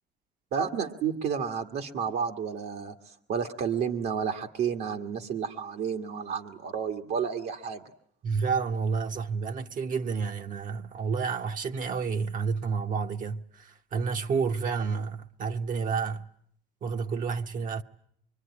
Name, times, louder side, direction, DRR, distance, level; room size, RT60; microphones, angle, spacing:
voice 1, 0.5-7.8, right 7 dB, 75° right, 1.9 m, -31 dB
voice 2, 8.2-16.3 16.8-17.8, right 5 dB, 50° right, 1.2 m, -30 dB
24.0 x 24.0 x 9.8 m
cardioid pair, 110°, 17 cm